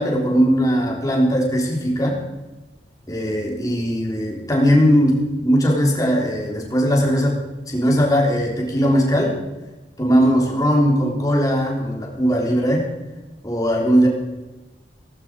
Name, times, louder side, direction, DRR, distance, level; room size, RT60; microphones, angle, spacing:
voice 1, 0.0-2.2 3.1-7.4 7.7-9.4 10.0-12.8 13.4-14.1, equal, 20° left, -1 dB, 3.6 m, -19 dB
17.5 x 16.0 x 4.8 m, 1.1 s
head